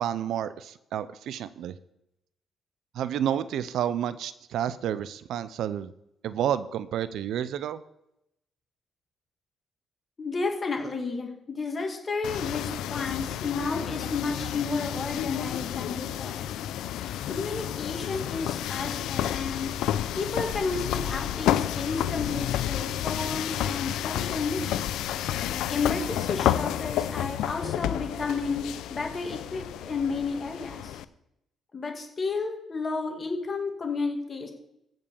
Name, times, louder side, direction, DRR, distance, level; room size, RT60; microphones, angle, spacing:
voice 1, 0.0-1.7 2.9-5.9 6.2-7.8, right 10 dB, 75° right, 14 dB, 0.5 m, -30 dB
voice 2, 10.2-16.4 17.3-19.7 20.2-24.9 25.7-28.6 28.9-31.0 31.7-34.5, left 4 dB, 35° left, 2 dB, 2.1 m, -32 dB
sound 1, 12.2-31.0, left 11 dB, 85° left, 0.5 m, -30 dB
15.0 x 5.3 x 7.1 m, 0.84 s
cardioid pair, 90°, 0 cm